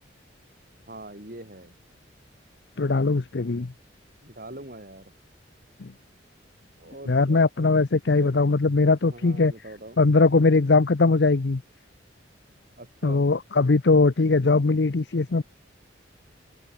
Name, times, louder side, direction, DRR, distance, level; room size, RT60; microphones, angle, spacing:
voice 1, 0.9-1.8 4.2-5.1 6.8-7.5 8.2-8.3 9.1-10.0 12.8-13.3, right 1 dB, 50° right, 5.8 m, -42 dB
voice 2, 2.8-3.7 5.8-5.9 7.1-9.5 10.0-11.6 13.0-15.4, left 3 dB, 60° left, 0.7 m, -20 dB
open air
head